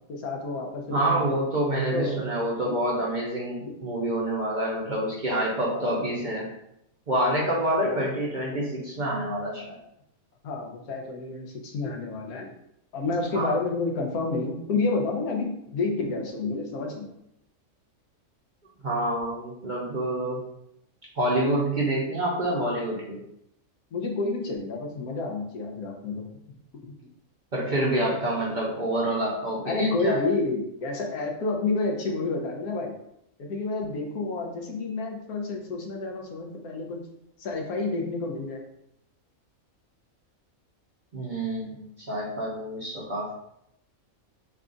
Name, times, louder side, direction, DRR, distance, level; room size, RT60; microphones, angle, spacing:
voice 1, 0.1-1.4 1.9-2.2 2.6-2.7 3.6-3.7 5.6-5.9 7.8-8.1 10.4-12.5 12.9-17.1 23.9-26.3 26.8-26.9 29.6-33.0 33.4-37.1 37.4-38.6, left 3 dB, 85° left, 0 dB, 1.2 m, -30 dB
voice 2, 0.9-6.5 7.1-9.8 13.3-13.5 18.8-20.4 21.2-23.2 27.5-30.2 41.1-43.3, right 1 dB, 45° right, -5 dB, 0.6 m, -27 dB
3.3 x 2.4 x 3.8 m, 0.78 s
omnidirectional pair, 1.5 m